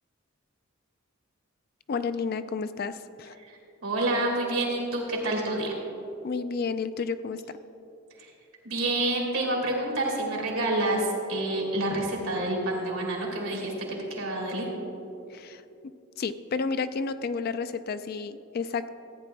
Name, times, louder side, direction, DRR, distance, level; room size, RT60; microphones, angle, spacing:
voice 1, 1.9-3.4 6.2-7.4 15.3-15.6 16.2-18.9, left 5 dB, 45° left, 12 dB, 0.3 m, -31 dB
voice 2, 3.4-5.7 8.2-8.3 8.6-13.7 14.1-14.7, right 1 dB, 80° right, -2 dB, 2.6 m, -28 dB
14.5 x 9.3 x 3.4 m, 2.8 s
head